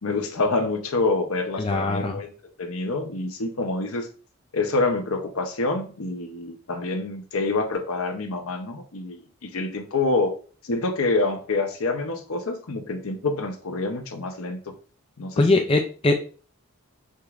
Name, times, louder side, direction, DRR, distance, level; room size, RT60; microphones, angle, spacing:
voice 1, 0.0-2.3 2.6-4.1 4.5-10.4 10.6-14.7 15.2-15.6, left 3 dB, 75° left, 5 dB, 0.7 m, -27 dB
voice 2, 1.6-2.2 15.4-16.1, left 2 dB, 25° left, 4 dB, 0.4 m, -21 dB
6.3 x 3.1 x 2.4 m, 0.39 s
head